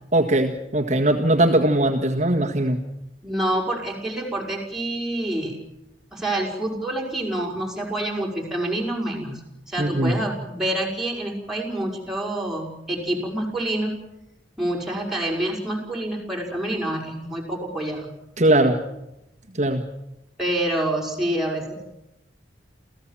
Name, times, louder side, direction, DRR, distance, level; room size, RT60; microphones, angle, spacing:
voice 1, 0.1-2.8 9.8-10.2 18.4-18.8 19.6-19.8, right 1 dB, 45° right, 1 dB, 1.8 m, -20 dB
voice 2, 3.2-5.6 6.1-9.4 9.7-13.9 14.6-18.1 20.4-21.9, right 1 dB, ahead, -2 dB, 5.7 m, -27 dB
28.5 x 16.0 x 7.5 m, 0.87 s
head